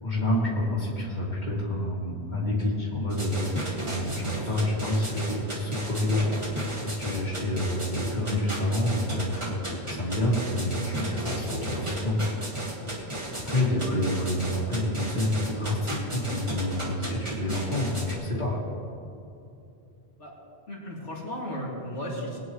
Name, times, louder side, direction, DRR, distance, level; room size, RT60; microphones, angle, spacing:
voice 1, 0.0-6.3 6.8-9.4 9.9-12.2 12.9-13.0 13.4-18.6, left 1 dB, 40° left, -6 dB, 2.7 m, -28 dB
sound 1, 3.1-18.1, right 1 dB, 25° right, 2.0 m, -34 dB
voice 2, 13.5-14.4 20.2-20.3 20.7-22.4, equal, 90° left, -5 dB, 2.9 m, -36 dB
21.5 x 9.5 x 3.2 m, 2.6 s
omnidirectional pair, 1.2 m